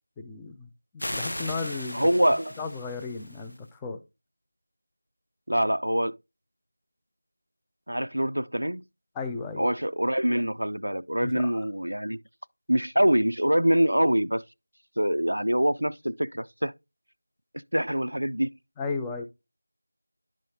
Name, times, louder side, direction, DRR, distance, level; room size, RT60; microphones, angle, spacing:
voice 1, 0.2-0.7 1.1-2.1 2.6-4.0 9.2-9.6 11.2-11.5 18.8-19.2, left 4 dB, 5° left, 0.3 m, -34 dB
sound 1, 1.0-3.6, left 1 dB, 65° left, 0.9 m, -37 dB
voice 2, 1.9-2.5 5.5-6.2 7.9-8.8 9.6-12.2 12.7-14.4 15.0-16.7 17.7-18.5, equal, 85° right, 0.3 m, -24 dB
10.5 x 6.2 x 2.7 m
figure-of-eight pair, 175°, 0 cm